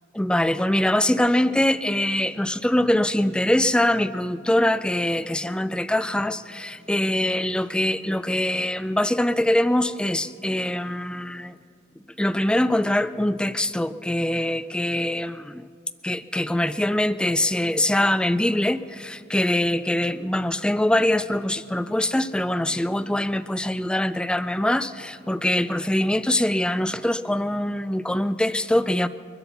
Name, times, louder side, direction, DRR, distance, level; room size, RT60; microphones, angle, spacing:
voice 1, 0.1-11.5 12.2-15.7 16.0-29.1, left 1 dB, 5° left, 14 dB, 0.3 m, -23 dB
23.0 x 8.0 x 7.1 m, 2.3 s
head